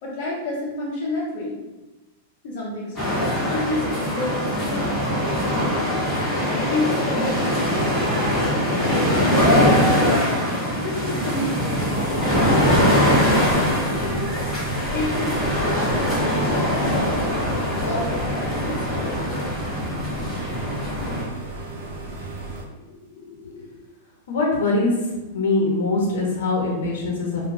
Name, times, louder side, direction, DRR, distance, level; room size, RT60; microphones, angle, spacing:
voice 1, 0.0-1.6 2.4-6.0 6.5-10.2 10.8-14.5 14.9-19.3, left 1 dB, 40° left, -5 dB, 0.9 m, -31 dB
sound 1, 3.0-21.2, equal, 5° left, 0.9 m, -22 dB
sound 2, 11.7-22.6, right 2 dB, 55° right, 0.6 m, -34 dB
voice 2, 22.8-23.7 24.3-24.9 25.3-27.5, left 2 dB, 80° left, -2 dB, 0.8 m, -23 dB
2.3 x 2.2 x 3.2 m, 1.1 s
supercardioid pair, 170°, 0 cm